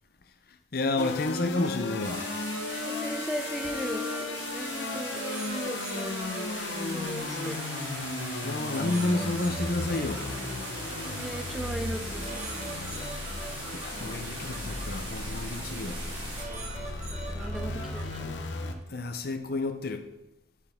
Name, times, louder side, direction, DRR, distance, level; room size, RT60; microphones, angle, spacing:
voice 1, 0.5-2.4 8.4-10.3 13.7-16.0 18.9-20.1, left 2 dB, 55° left, 8 dB, 0.7 m, -31 dB
sound 1, 1.0-18.7, left 2 dB, 85° left, 0.8 m, -35 dB
sound 2, 2.0-16.4, right 1 dB, 25° right, 1.7 m, -40 dB
voice 2, 2.8-4.1 4.5-5.2 5.5-6.1 6.8-7.6 11.1-12.3 17.1-18.4, equal, ahead, 6 dB, 0.4 m, -37 dB
sound 3, 5.1-7.8 8.7-11.4 12.2-14.9 15.9-16.1 16.4-18.3, right 3 dB, 40° right, 1.0 m, -43 dB
9.9 x 4.6 x 3.6 m, 0.95 s
head